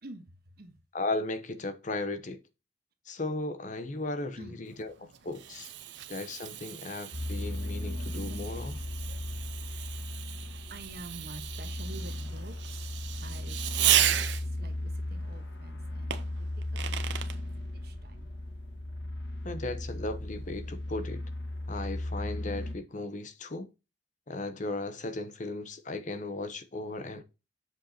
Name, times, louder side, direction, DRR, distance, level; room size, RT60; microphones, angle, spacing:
voice 1, 0.0-0.7 4.4-4.6 5.8-6.1 7.0-7.1 8.0-8.4 9.0-16.5 16.7-17.3 17.8-18.3, right 2 dB, 60° right, 1.2 m, -49 dB
voice 2, 0.9-2.4 3.1-5.7 6.1-8.8 19.4-21.2 21.7-23.7 24.3-27.2, left 2 dB, 45° left, 0.9 m, -36 dB
Fireworks, 4.7-14.7 16.1-17.4, right 11 dB, 80° right, 0.7 m, -33 dB
sound 1, 7.1-22.7, left 1 dB, 75° left, 1.6 m, -36 dB
7.7 x 6.3 x 2.9 m
head